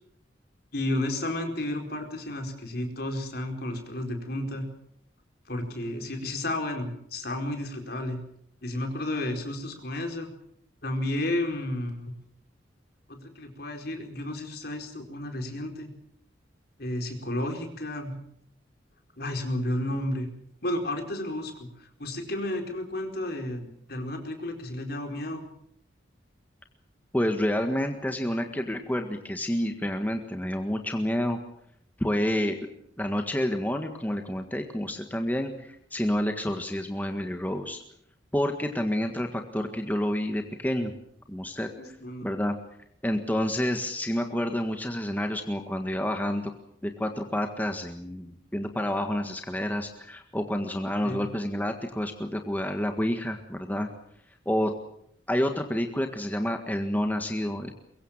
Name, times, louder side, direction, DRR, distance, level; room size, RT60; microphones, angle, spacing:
voice 1, 0.7-4.7 5.5-8.2 8.6-10.3 10.8-12.1 13.1-15.9 16.8-18.2 19.2-20.3 20.6-25.4 41.8-42.3 51.0-51.2, left 1 dB, 55° left, 4 dB, 4.6 m, -32 dB
voice 2, 27.1-31.4 32.0-32.6 33.0-37.8 38.3-40.9 41.3-41.7 42.2-42.6 43.0-46.5 46.8-53.9 54.4-54.7 55.3-57.7, left 1 dB, 10° left, 5 dB, 1.7 m, -29 dB
23.0 x 22.5 x 7.4 m, 0.71 s
head